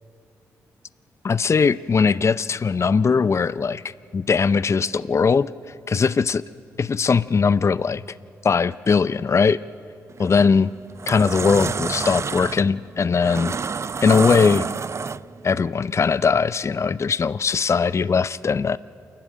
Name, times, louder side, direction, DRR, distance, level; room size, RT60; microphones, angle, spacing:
voice 1, 1.2-5.5 5.9-6.4 6.8-8.0 8.4-9.6 10.2-10.7 11.1-13.5 14.0-14.7 15.4-18.8, left 5 dB, 40° left, 17 dB, 0.5 m, -20 dB
sound 1, 10.1-10.3 10.8-15.5, right 5 dB, 40° right, 0.5 m, -28 dB
27.5 x 11.5 x 9.8 m, 2.4 s
hypercardioid pair, 45°, 7 cm